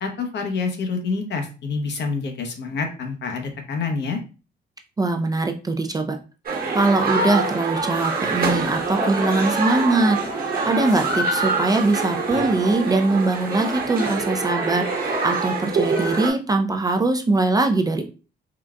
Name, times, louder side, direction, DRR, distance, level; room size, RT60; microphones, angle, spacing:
voice 1, 0.0-4.2, left 4 dB, 60° left, 4 dB, 0.8 m, -27 dB
voice 2, 5.0-6.2 6.7-18.0, right 2 dB, 20° right, 5 dB, 0.4 m, -22 dB
sound 1, 6.5-16.3, right 3 dB, 50° right, 1.1 m, -25 dB
3.8 x 2.3 x 2.2 m, 0.33 s
cardioid pair, 90°, 20 cm